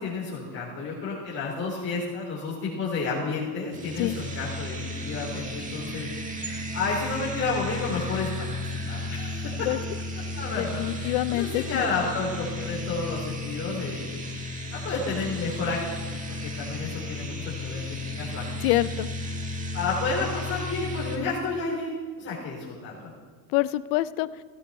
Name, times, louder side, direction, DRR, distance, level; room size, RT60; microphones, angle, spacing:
voice 1, 0.0-8.5 8.9-9.7 10.4-14.2 14.7-15.8 16.1-18.4 19.7-23.1, left 4 dB, 35° left, -7 dB, 3.8 m, -31 dB
sound 1, 3.7-21.2, left 2 dB, 20° right, 1.5 m, -34 dB
voice 2, 10.5-11.8 18.6-19.1 23.5-24.3, left 17 dB, 75° left, 17 dB, 0.6 m, -26 dB
16.5 x 13.0 x 4.3 m, 1.5 s
cardioid pair, 140°, 44 cm